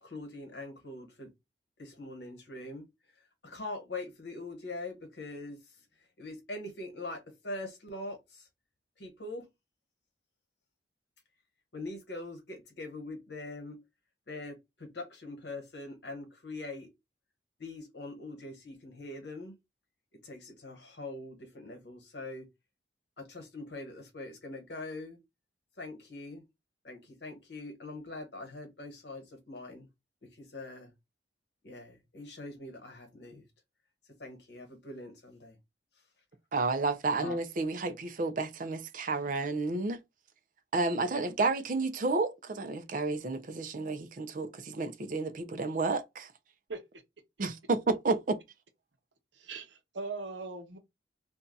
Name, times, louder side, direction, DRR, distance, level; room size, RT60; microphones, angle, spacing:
voice 1, 0.0-1.3 1.8-2.8 3.4-5.6 6.2-8.5 9.0-9.5 11.7-13.8 14.3-16.9 17.6-19.5 20.2-22.5 23.2-25.2 25.8-26.4 26.8-29.9 30.3-30.9 31.6-33.4 34.2-35.6 37.2-37.4, left 2 dB, 70° left, 1.2 m, -43 dB
voice 2, 36.5-40.0 40.7-46.3 47.4-48.4, right 3 dB, 45° right, 0.5 m, -31 dB
voice 3, 49.3-50.8, right 3 dB, 80° right, 0.8 m, -40 dB
2.7 x 2.3 x 3.9 m
head